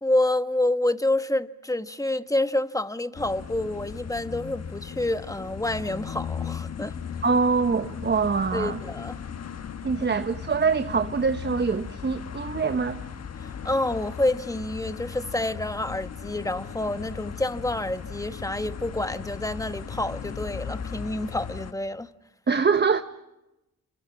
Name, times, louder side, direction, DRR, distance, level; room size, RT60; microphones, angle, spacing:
voice 1, 0.0-6.9 8.5-9.2 13.4-22.1, left 1 dB, 10° left, 1.4 m, -28 dB
sound 1, 3.1-21.7, left 7 dB, 50° left, 1.4 m, -37 dB
voice 2, 7.2-8.8 9.8-13.0 22.5-23.0, right 5 dB, 30° right, 1.2 m, -24 dB
29.5 x 26.5 x 5.9 m
supercardioid pair, 55°, 34 cm